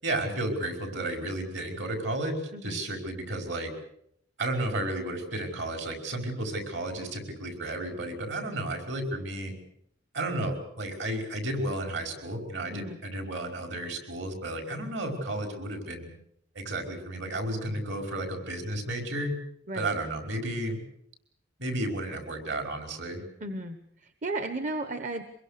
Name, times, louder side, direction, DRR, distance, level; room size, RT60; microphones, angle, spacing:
voice 1, 0.0-3.7 4.4-9.5 10.1-16.1 16.6-19.4 19.7-20.8 21.6-23.2, right 1 dB, 65° right, 5 dB, 5.3 m, -32 dB
voice 2, 23.4-25.2, right 2 dB, 40° right, 9 dB, 1.2 m, -34 dB
24.5 x 22.0 x 6.8 m, 0.72 s
head